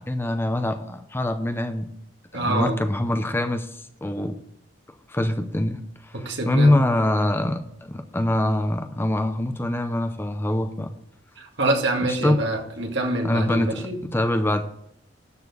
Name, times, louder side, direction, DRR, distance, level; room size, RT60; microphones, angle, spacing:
voice 1, 0.0-1.9 2.3-3.7 4.0-4.4 5.1-10.9 12.0-12.4 13.2-14.6, left 1 dB, 10° left, 8 dB, 0.6 m, -24 dB
voice 2, 2.3-2.8 6.1-6.7 11.4-14.0, right 1 dB, 65° right, 2 dB, 1.9 m, -25 dB
13.0 x 4.3 x 8.2 m, 0.73 s
head